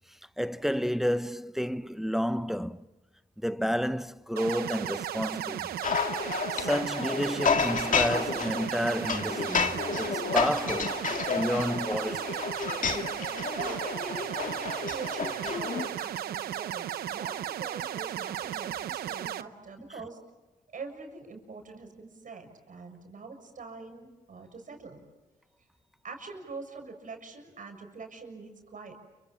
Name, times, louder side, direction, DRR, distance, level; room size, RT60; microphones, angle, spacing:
voice 1, 0.4-2.9 3.4-5.8 6.5-12.4, equal, ahead, 0.8 m, -31 dB
sound 1, 4.4-19.4, right 11 dB, 80° right, 0.8 m, -35 dB
sound 2, 5.8-15.9, left 6 dB, 60° left, 2.1 m, -31 dB
voice 2, 13.5-20.2 20.7-25.0 26.0-28.9, right 4 dB, 60° right, 6.8 m, -43 dB
29.5 x 25.5 x 7.5 m
supercardioid pair, 50°, 16 cm